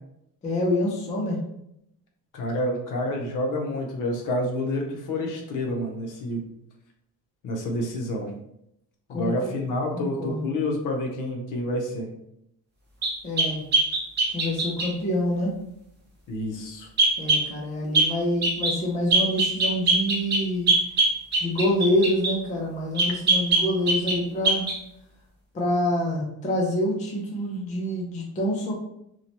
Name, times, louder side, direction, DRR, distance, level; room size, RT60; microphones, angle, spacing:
voice 1, 0.4-1.4 9.1-9.3 9.9-10.5 13.2-13.6 14.3-15.5 17.2-20.7 21.4-24.7 25.5-28.7, left 1 dB, 20° left, -2 dB, 0.4 m, -26 dB
voice 2, 2.3-6.4 7.4-8.3 9.1-12.1 16.3-16.9, left 1 dB, 55° left, 1 dB, 0.6 m, -28 dB
sound 1, 13.0-14.9 17.0-17.5 17.9-18.1 18.4-18.8 19.1-22.4 23.0-24.2 24.4-24.8, right 2 dB, 30° right, 0.5 m, -22 dB
2.7 x 2.1 x 2.8 m, 0.78 s
cardioid pair, 170°, 37 cm